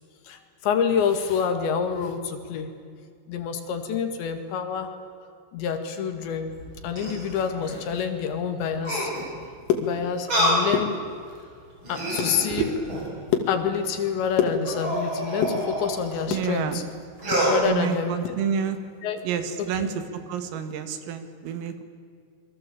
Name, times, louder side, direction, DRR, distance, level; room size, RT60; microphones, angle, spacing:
voice 1, 0.3-2.7 3.3-4.9 5.5-6.5 6.8-9.1 9.8-10.9 11.9-12.7 13.5-16.8 17.5-18.2 19.0-19.2 19.6-19.7, left 7 dB, 65° left, 7 dB, 4.1 m, -27 dB
sound 1, 6.5-7.8 8.8-9.4 10.3-10.7 11.3-11.4 11.8-13.2 14.6-16.2 17.2-17.6, equal, 25° right, 7.3 m, -27 dB
sound 2, 9.4-10.4 10.6-11.4 11.9-12.4 12.8-15.0 15.3-16.5 16.9-18.4 18.7-18.8 19.2-19.4 19.7-20.0, left 9 dB, 80° left, 5.0 m, -28 dB
voice 2, 16.3-16.8 17.6-18.8 19.2-19.9 20.3-21.8, right 8 dB, 85° right, 9 dB, 4.6 m, -28 dB
27.5 x 23.5 x 8.6 m, 2.2 s
omnidirectional pair, 5.8 m